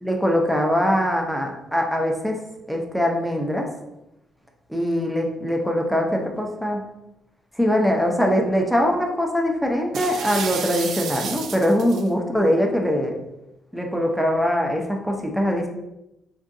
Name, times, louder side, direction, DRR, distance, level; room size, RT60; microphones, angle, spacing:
voice 1, 0.0-2.4 2.7-3.7 4.7-6.8 7.6-13.1 13.7-15.7, equal, ahead, 1 dB, 0.6 m, -22 dB
sound 1, 9.9-12.1, right 6 dB, 70° right, 0.4 m, -31 dB
3.6 x 2.6 x 2.6 m, 0.90 s
cardioid pair, 90°, 0 cm